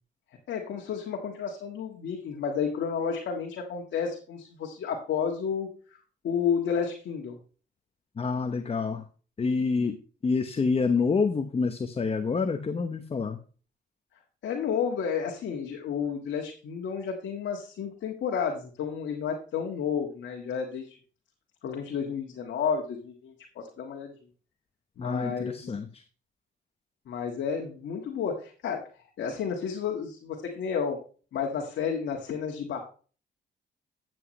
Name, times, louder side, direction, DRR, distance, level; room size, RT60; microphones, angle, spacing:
voice 1, 0.5-6.0 6.2-7.4 14.4-21.0 21.6-24.1 25.0-25.7 27.1-28.9 29.2-31.0 31.3-32.9, left 6 dB, 70° left, 1 dB, 1.7 m, -31 dB
voice 2, 8.2-9.0 9.4-10.0 10.2-13.4 25.0-26.0, left 4 dB, 30° left, 9 dB, 0.9 m, -27 dB
12.0 x 7.9 x 3.1 m, 0.38 s
cardioid pair, 90°, 20 cm